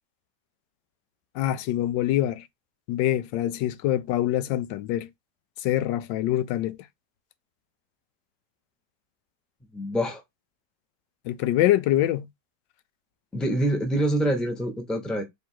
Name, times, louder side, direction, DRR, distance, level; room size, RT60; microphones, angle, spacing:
voice 1, 1.4-2.5 2.9-5.1 5.6-6.8 11.3-12.3, left 13 dB, 90° left, 1.2 m, -25 dB
voice 2, 9.7-10.2 13.3-15.2, right 1 dB, ahead, 0.7 m, -25 dB
3.4 x 3.4 x 4.4 m
omnidirectional pair, 1.9 m